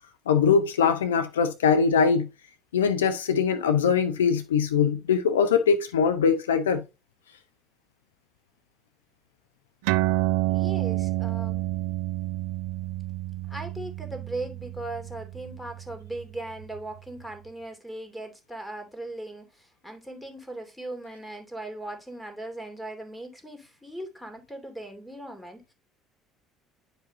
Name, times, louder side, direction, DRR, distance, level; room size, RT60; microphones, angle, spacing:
voice 1, 0.3-2.3 2.7-6.8, left 6 dB, 85° left, 0.6 m, -22 dB
sound 1, 9.8-16.8, right 18 dB, 70° right, 0.3 m, -29 dB
voice 2, 10.5-11.6 13.5-25.7, right 1 dB, 5° left, 2.6 m, -38 dB
10.0 x 5.0 x 2.7 m
hypercardioid pair, 60°, 0 cm